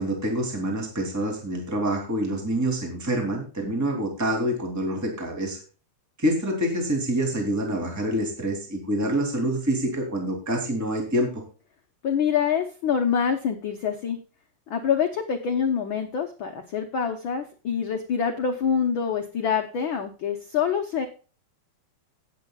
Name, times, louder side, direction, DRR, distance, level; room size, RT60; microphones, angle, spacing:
voice 1, 0.0-5.6 6.2-11.4, right 1 dB, 5° right, 1 dB, 2.4 m, -26 dB
voice 2, 12.0-14.2 14.7-21.1, left 7 dB, 80° left, 5 dB, 1.1 m, -26 dB
17.0 x 8.5 x 2.3 m, 0.36 s
omnidirectional pair, 3.7 m